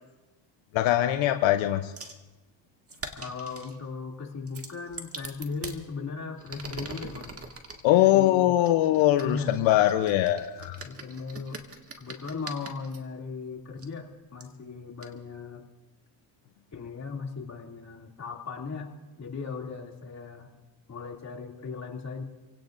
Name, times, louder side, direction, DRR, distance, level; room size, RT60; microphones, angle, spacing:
voice 1, 0.7-1.9 7.8-10.8, left 14 dB, 80° left, 7 dB, 0.9 m, -22 dB
sound 1, 2.0-2.2 2.9-3.8 4.5-5.8 6.4-7.8 8.6-13.0 13.8-13.9 14.4-14.5 15.0-15.1, right 3 dB, 30° right, 1.9 m, -42 dB
voice 2, 3.1-7.3 7.9-8.5 9.2-9.7 10.8-11.6 12.0-15.6 16.7-18.9 19.2-20.5 20.9-22.2, left 4 dB, 35° left, 0 dB, 2.7 m, -37 dB
29.0 x 17.0 x 2.6 m, 1.1 s
cardioid pair, 85°, 46 cm